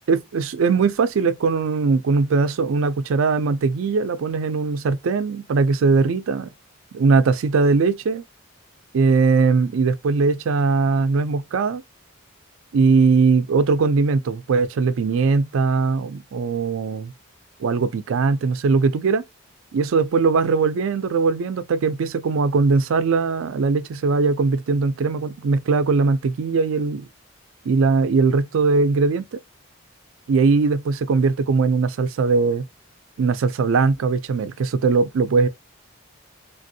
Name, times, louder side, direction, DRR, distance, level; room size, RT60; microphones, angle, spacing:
voice 1, 0.1-6.5 6.9-8.2 8.9-11.8 12.7-17.1 17.6-19.2 19.7-27.1 27.7-29.4 30.3-32.6 33.2-35.5, right 4 dB, 70° right, 0.4 m, -20 dB
3.4 x 2.5 x 2.6 m
head